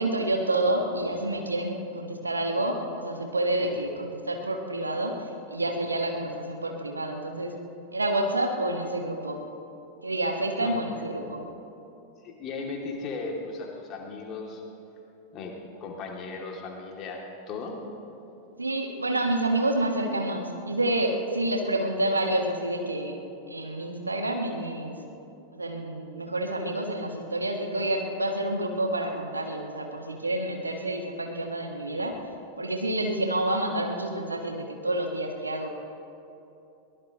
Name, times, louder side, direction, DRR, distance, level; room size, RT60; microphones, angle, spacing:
voice 1, 0.0-5.1 5.5-7.5 7.9-9.4 10.0-11.5 18.6-23.2 23.5-25.0 25.5-32.1 32.6-35.7, right 1 dB, 80° right, 3 dB, 1.5 m, -28 dB
voice 2, 12.2-14.6 15.3-17.8, left 3 dB, 35° left, 0 dB, 2.6 m, -36 dB
22.5 x 18.5 x 3.0 m, 2.9 s
figure-of-eight pair, 90°, 0 cm